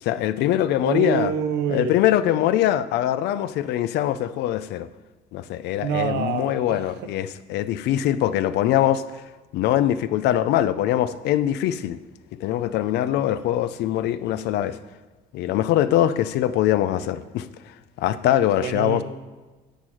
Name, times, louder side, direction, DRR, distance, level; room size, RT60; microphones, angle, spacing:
voice 1, 0.0-1.3 1.7-4.9 5.3-9.0 9.5-12.0 12.3-14.8 15.3-17.5 18.0-19.0, left 12 dB, 80° left, 14 dB, 0.6 m, -22 dB
voice 2, 0.8-2.0 5.8-7.1 18.6-19.0, right 7 dB, 80° right, 7 dB, 1.1 m, -27 dB
10.5 x 7.6 x 4.8 m, 1.3 s
cardioid pair, 110°, 17 cm